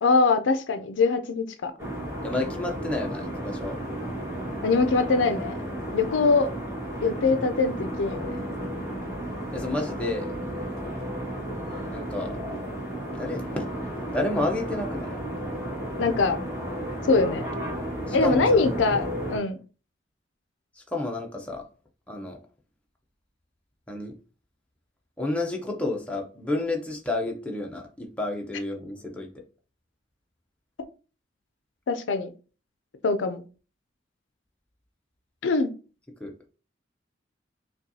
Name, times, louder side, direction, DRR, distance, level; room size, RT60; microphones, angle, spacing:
voice 1, 0.0-1.7 4.6-5.6 5.9-6.5 7.0-8.5 16.0-16.4 17.0-17.4 18.1-19.6 31.9-32.3 33.0-33.4 35.4-35.7, left 4 dB, 75° left, 0.5 m, -23 dB
sound 1, 1.8-19.4, right 1 dB, 15° right, 1.5 m, -33 dB
voice 2, 2.2-3.8 9.5-10.3 11.9-12.4 13.1-13.7 14.1-15.2 18.1-18.7 20.9-21.6 22.1-22.4 23.9-24.1 25.2-29.4 36.2-36.3, left 2 dB, 5° left, 0.6 m, -30 dB
5.2 x 2.3 x 2.7 m
head